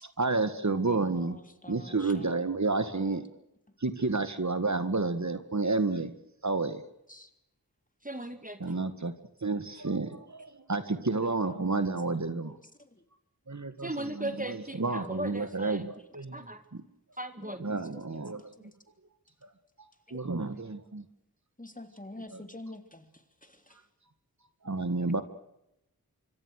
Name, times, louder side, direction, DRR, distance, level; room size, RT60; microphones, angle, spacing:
voice 1, 0.0-1.4 1.7-3.2 3.8-6.1 6.4-6.8 8.6-9.1 9.4-12.6 13.5-16.8 17.6-18.4 20.1-21.0 24.6-25.2, right 3 dB, 50° right, 11 dB, 1.9 m, -30 dB
voice 2, 0.6-2.5 3.0-3.1 7.1-7.3 11.2-11.8 12.1-12.5 12.8-13.0 16.0-16.1 16.3-16.6 17.4-17.6 17.9-18.7 20.1-20.7 21.6-23.8, left 1 dB, 20° left, 8 dB, 3.5 m, -49 dB
voice 3, 8.0-8.9 13.8-15.9 16.3-16.6 17.2-17.6, right 1 dB, 20° right, 9 dB, 2.0 m, -37 dB
25.5 x 25.0 x 6.6 m, 0.85 s
wide cardioid pair, 55°, 37 cm